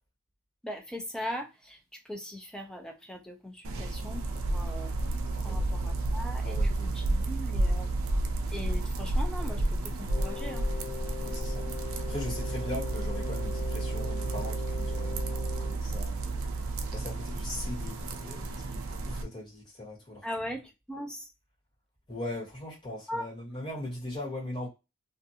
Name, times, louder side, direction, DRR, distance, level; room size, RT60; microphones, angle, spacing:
voice 1, 0.6-4.9 5.4-7.9 8.5-10.7 20.2-21.3 23.1-23.3, equal, 5° left, 0.5 m, -40 dB
sound 1, 3.6-19.2, right 2 dB, 70° right, 0.5 m, -31 dB
voice 2, 5.3-5.7 6.4-6.9 11.2-11.7 11.9-16.3 16.9-18.8 19.1-20.2 22.1-24.7, left 1 dB, 20° left, 1.3 m, -40 dB
Wind instrument woodwind instrument, 10.1-15.8, left 8 dB, 60° left, 0.6 m, -41 dB
2.4 x 2.4 x 2.7 m
head